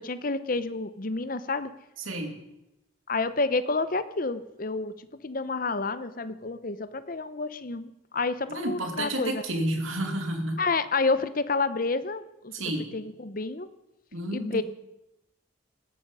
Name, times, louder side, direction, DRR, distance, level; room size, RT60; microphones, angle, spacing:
voice 1, 0.0-1.7 3.1-9.4 10.6-12.5 12.9-13.7 14.3-14.6, left 3 dB, 45° left, 13 dB, 0.8 m, -29 dB
voice 2, 2.1-2.4 8.5-10.6 12.5-12.9 14.1-14.6, right 1 dB, 85° right, 4 dB, 2.7 m, -30 dB
17.5 x 12.5 x 5.5 m, 0.92 s
head